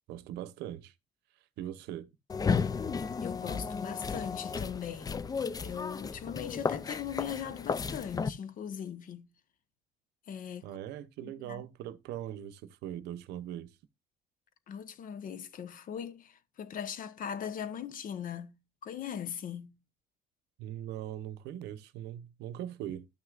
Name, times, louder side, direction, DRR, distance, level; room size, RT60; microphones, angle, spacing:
voice 1, 0.1-0.9 1.6-2.1 10.6-13.7 20.6-23.1, right 11 dB, 85° right, 0.8 m, -40 dB
sound 1, 2.3-8.3, left 5 dB, 20° left, 0.4 m, -34 dB
voice 2, 3.2-5.3 5.6-9.3 10.3-10.8 11.2-11.6 14.7-19.8, left 8 dB, 55° left, 1.0 m, -40 dB
12.5 x 6.4 x 2.4 m
cardioid pair, 110°, 17 cm